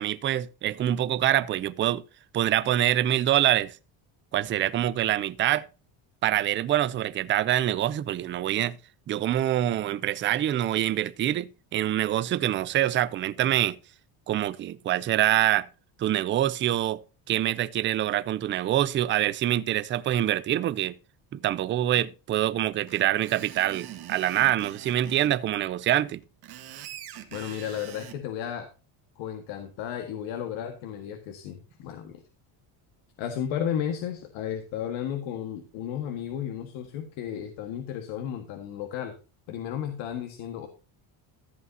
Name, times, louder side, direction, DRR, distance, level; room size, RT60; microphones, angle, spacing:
voice 1, 0.0-2.0 2.3-3.8 4.3-5.7 6.2-8.8 9.1-13.8 14.3-15.7 16.0-20.9 21.3-26.2, right 12 dB, 30° right, 0.4 m, -25 dB
Screech, 22.9-25.3 26.2-28.2, right 11 dB, 55° right, 1.7 m, -43 dB
voice 2, 27.3-28.7 29.2-32.2 33.2-39.1 39.5-40.7, left 9 dB, 85° left, 1.7 m, -33 dB
14.5 x 8.2 x 2.7 m
cardioid pair, 175°, 46 cm